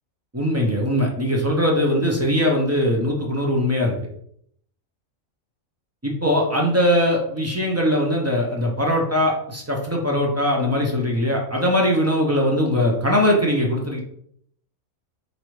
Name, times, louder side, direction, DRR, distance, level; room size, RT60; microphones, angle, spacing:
voice 1, 0.3-3.9 6.0-14.0, equal, 25° right, -1 dB, 0.3 m, -21 dB
4.7 x 2.6 x 3.1 m, 0.67 s
omnidirectional pair, 1.4 m